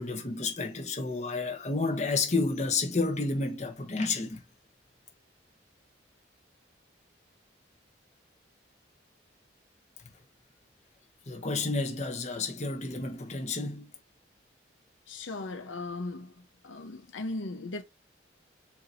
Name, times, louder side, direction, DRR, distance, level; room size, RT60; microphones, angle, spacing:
voice 1, 0.0-4.4 11.3-13.9, left 3 dB, 35° left, 1.0 m, -30 dB
voice 2, 15.1-16.3 16.6-17.8, left 2 dB, 85° left, 0.8 m, -37 dB
7.1 x 2.9 x 2.5 m
head